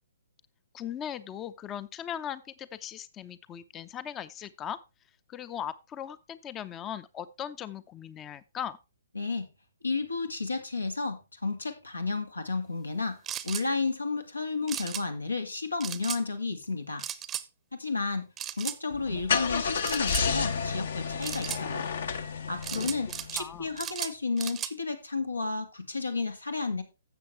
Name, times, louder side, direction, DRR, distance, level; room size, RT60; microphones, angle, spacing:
voice 1, 0.7-4.8 5.3-8.8 22.7-22.9 23.4-23.7, left 9 dB, 20° left, 17 dB, 0.6 m, -38 dB
voice 2, 9.2-9.5 9.8-13.2 13.4-17.0 17.8-18.3 18.6-21.9 22.5-26.8, left 4 dB, 85° left, 7 dB, 2.1 m, -32 dB
sound 1, 13.3-13.7 14.7-15.0 15.8-16.2 17.0-17.5 18.4-18.8 19.8-20.3 21.2-21.6 22.6-23.5 23.8-24.7, right 11 dB, 20° right, 0.7 m, -36 dB
Car / Engine starting, 18.9-23.6, left 6 dB, 60° left, 1.3 m, -31 dB
13.0 x 7.8 x 3.3 m, 0.27 s
figure-of-eight pair, 130°, 0 cm